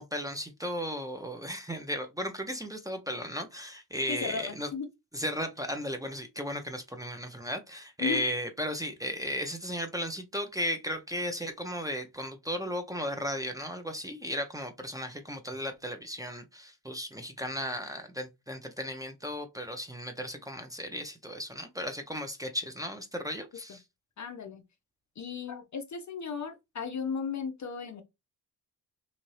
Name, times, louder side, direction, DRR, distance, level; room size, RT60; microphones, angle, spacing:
voice 1, 0.0-4.7 5.1-23.8, equal, 10° right, 0.7 m, -35 dB
voice 2, 4.1-4.9 8.0-8.2 23.7-23.8 24.2-24.6 25.2-28.0, left 5 dB, 40° left, 0.6 m, -35 dB
2.8 x 2.6 x 3.1 m
hypercardioid pair, 45°, 46 cm